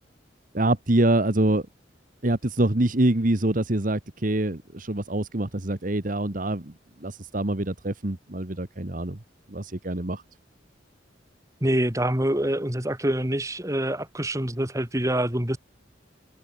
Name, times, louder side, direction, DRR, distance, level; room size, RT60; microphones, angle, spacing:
voice 1, 0.5-1.7 2.2-9.2 9.5-10.2, right 1 dB, 45° right, 1.6 m, -25 dB
voice 2, 11.6-15.6, right 1 dB, 15° right, 2.7 m, -25 dB
head